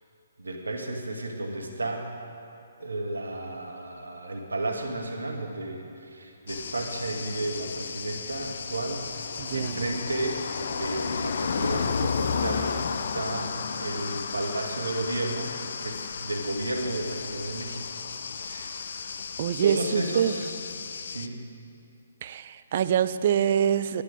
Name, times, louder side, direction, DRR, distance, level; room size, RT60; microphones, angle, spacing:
voice 1, 0.4-2.1 2.8-10.4 10.7-15.5 15.8-17.8 18.3-18.9 19.6-20.6 21.0-21.4, right 2 dB, 85° right, 1 dB, 1.6 m, -33 dB
sound 1, 6.5-21.3, left 6 dB, 60° left, 0.5 m, -33 dB
voice 2, 9.4-9.9 19.4-20.3 22.2-24.0, right 9 dB, 45° right, 12 dB, 0.4 m, -25 dB
10.5 x 10.5 x 5.1 m, 2.7 s
figure-of-eight pair, 135°, 0 cm